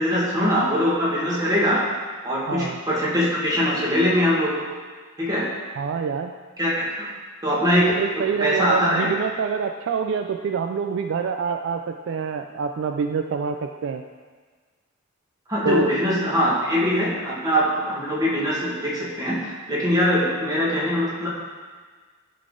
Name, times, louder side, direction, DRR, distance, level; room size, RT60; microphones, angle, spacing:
voice 1, 0.0-1.8 2.2-4.6 5.2-5.5 6.6-6.9 7.4-9.1 15.5-19.4 19.7-21.3, equal, 20° right, -6 dB, 1.6 m, -22 dB
voice 2, 2.5-2.8 5.8-6.3 8.0-14.0 15.6-15.9, right 5 dB, 65° right, 6 dB, 0.3 m, -26 dB
11.0 x 3.9 x 3.7 m, 1.5 s
head